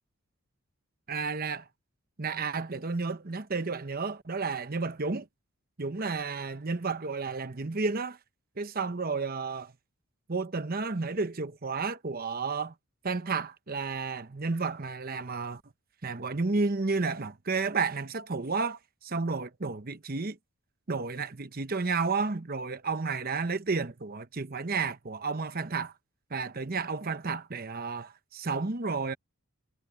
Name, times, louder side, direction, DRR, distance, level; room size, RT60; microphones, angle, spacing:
voice 1, 1.1-1.6 2.2-5.3 5.8-8.2 8.6-9.7 10.3-12.7 13.0-15.6 16.0-20.4 20.9-25.9 26.3-29.1, right 4 dB, 40° right, 0.9 m, -32 dB
head